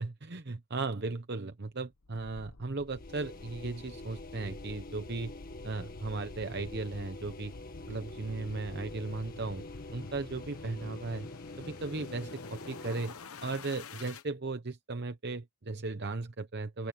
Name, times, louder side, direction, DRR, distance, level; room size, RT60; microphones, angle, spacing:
voice 1, 0.0-5.3 5.6-7.5 7.9-9.6 9.9-11.3 11.6-13.1 13.4-16.9, right 3 dB, 50° right, 0.9 m, -36 dB
sound 1, 2.0-14.2, left 3 dB, 80° left, 1.1 m, -48 dB
sound 2, 2.9-13.3, left 2 dB, 40° left, 1.9 m, -47 dB
open air
head